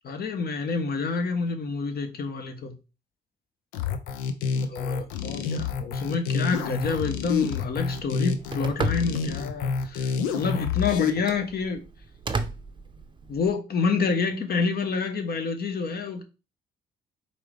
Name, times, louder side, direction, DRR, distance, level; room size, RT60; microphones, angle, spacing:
voice 1, 0.0-2.7 4.6-11.8 13.3-16.2, left 4 dB, 50° left, 1.0 m, -28 dB
sound 1, 3.7-11.1, left 6 dB, 80° left, 0.5 m, -28 dB
Telephone, 6.5-13.5, right 4 dB, 25° right, 0.6 m, -37 dB
4.5 x 2.7 x 3.3 m
hypercardioid pair, 50°, 20 cm